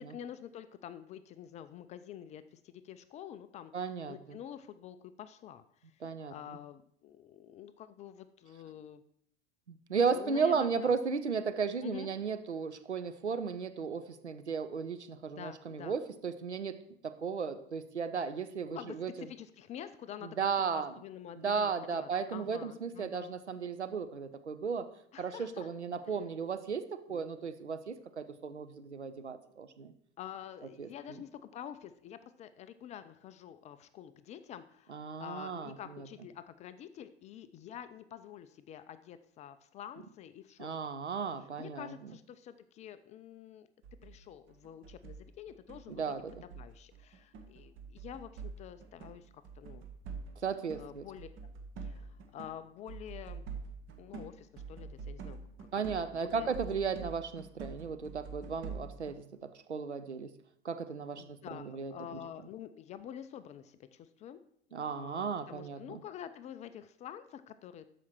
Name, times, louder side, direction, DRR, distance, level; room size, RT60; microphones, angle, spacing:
voice 1, 0.0-3.7 4.1-9.0 10.1-10.9 11.8-12.1 15.4-16.0 18.7-20.5 20.7-23.3 25.1-25.7 26.0-26.1 27.1-27.2 30.2-40.7 41.6-43.7 44.0-46.1 46.4-49.8 50.7-51.3 51.8-53.5 54.0-56.6 61.2-64.4 64.8-67.9, left 10 dB, 20° left, 12 dB, 0.3 m, -48 dB
voice 2, 3.7-4.4 6.0-6.6 9.7-16.8 17.0-19.1 20.2-20.9 21.4-24.9 25.2-29.9 30.8-30.9 34.9-36.1 40.6-41.9 45.9-46.3 50.4-51.0 55.7-60.3 60.6-61.9 64.7-66.0, right 5 dB, 85° right, 10 dB, 0.7 m, -35 dB
sound 1, 43.8-44.2 44.5-52.6 52.9-59.1, right 5 dB, 35° right, 1.3 m, -46 dB
13.0 x 5.0 x 4.5 m, 0.68 s
figure-of-eight pair, 80°, 34 cm